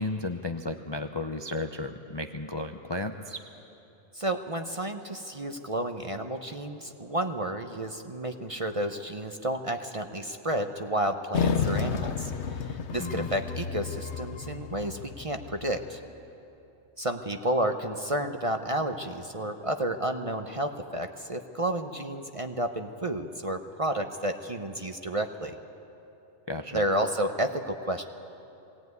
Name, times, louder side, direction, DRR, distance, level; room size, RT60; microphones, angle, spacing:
voice 1, 0.0-3.4 13.0-13.3 26.5-26.8, left 2 dB, 30° left, 6 dB, 0.5 m, -33 dB
voice 2, 4.1-16.0 17.0-25.5 26.7-28.0, right 1 dB, 30° right, 6 dB, 0.8 m, -31 dB
sound 1, 11.3-15.9, left 6 dB, 65° left, 1.1 m, -31 dB
21.0 x 17.5 x 9.5 m, 2.9 s
omnidirectional pair, 1.3 m